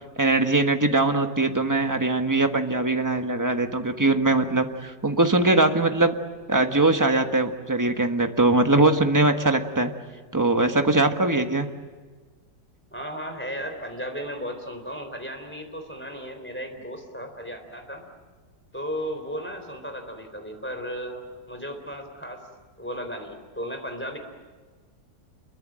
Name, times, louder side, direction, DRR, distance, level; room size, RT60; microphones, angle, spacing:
voice 1, 0.2-6.1 6.5-9.9 10.3-11.7, right 2 dB, 10° right, 5 dB, 1.2 m, -21 dB
voice 2, 12.9-18.0 18.7-22.4 22.8-24.2, equal, 5° left, 4 dB, 3.8 m, -35 dB
28.0 x 23.0 x 7.6 m, 1.4 s
omnidirectional pair, 1.9 m